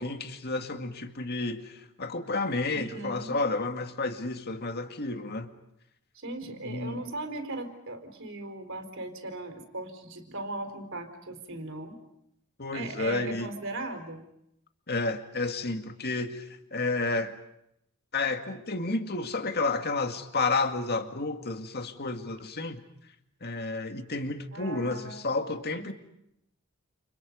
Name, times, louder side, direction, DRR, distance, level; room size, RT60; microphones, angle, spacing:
voice 1, 0.0-5.5 6.6-7.0 12.6-13.5 14.9-17.3 18.1-22.8 23.4-25.9, left 3 dB, 45° left, 2.2 m, -31 dB
voice 2, 2.7-3.4 6.1-12.0 12.7-14.2 24.5-25.3 25.7-25.9, right 2 dB, 60° right, 4.4 m, -38 dB
29.5 x 29.5 x 5.4 m
head